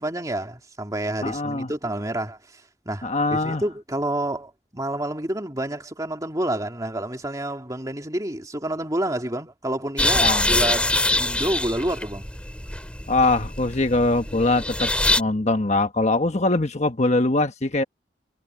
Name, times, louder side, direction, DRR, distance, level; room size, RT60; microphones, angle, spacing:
voice 1, 0.0-12.3, right 1 dB, 20° right, 2.8 m, -29 dB
voice 2, 1.2-1.7 3.0-3.6 10.2-10.4 13.1-14.9 15.2-17.8, left 2 dB, 40° left, 1.2 m, -22 dB
sound 1, 10.0-15.2, left 1 dB, 5° left, 3.0 m, -24 dB
head